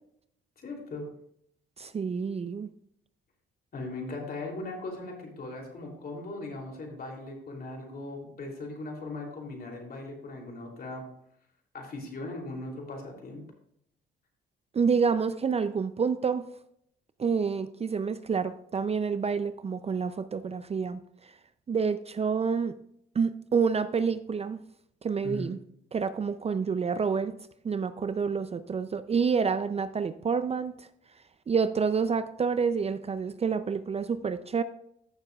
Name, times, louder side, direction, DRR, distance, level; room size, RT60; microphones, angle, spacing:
voice 1, 0.6-1.1 3.7-11.0 11.7-13.4 25.2-25.5, left 2 dB, 50° left, 0 dB, 3.0 m, -39 dB
voice 2, 1.8-2.7 14.7-16.5 17.2-21.3 21.7-22.7 23.1-24.6 25.0-25.6 25.9-27.3 27.6-30.9 31.5-34.6, right 5 dB, 30° right, 12 dB, 0.5 m, -28 dB
14.5 x 6.8 x 2.4 m, 0.71 s
cardioid pair, 90°, 20 cm